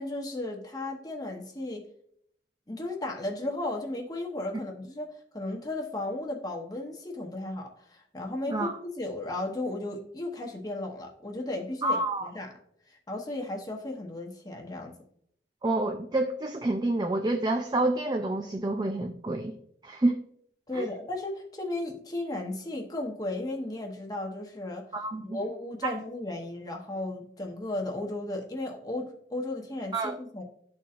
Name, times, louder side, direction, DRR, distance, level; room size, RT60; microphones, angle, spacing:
voice 1, 0.0-1.8 2.7-12.5 12.9-14.9 20.7-24.9 25.2-30.4, left 2 dB, 20° left, 0 dB, 0.9 m, -35 dB
voice 2, 11.8-12.3 15.6-19.5 19.8-20.2 20.7-20.9 24.9-25.4 25.8-25.9 29.9-30.2, right 2 dB, 25° right, 4 dB, 0.4 m, -28 dB
11.5 x 4.2 x 2.5 m, 0.68 s
head